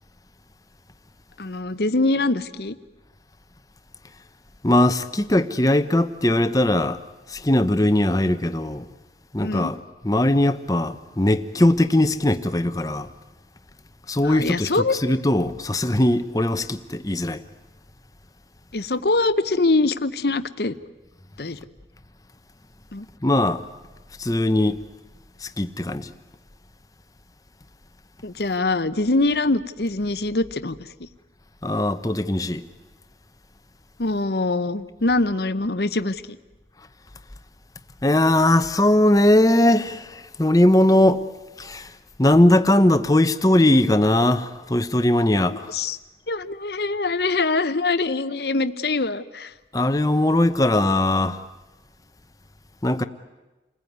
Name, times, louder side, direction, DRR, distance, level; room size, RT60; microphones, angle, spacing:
voice 1, 1.4-2.8 9.4-9.7 14.2-14.9 18.7-20.8 21.4-21.6 22.9-23.1 28.2-31.1 34.0-36.4 45.7-46.0 46.3-49.5, left 2 dB, 65° left, 0.9 m, -23 dB
voice 2, 4.6-7.0 7.3-8.9 9.3-9.8 10.0-13.1 14.1-14.7 15.0-17.4 23.2-23.6 24.2-24.8 25.4-26.1 31.6-32.6 38.0-41.2 41.6-41.9 42.2-45.7 49.7-51.4 52.8-53.0, left 1 dB, 20° left, 0.9 m, -19 dB
29.5 x 20.5 x 9.5 m
head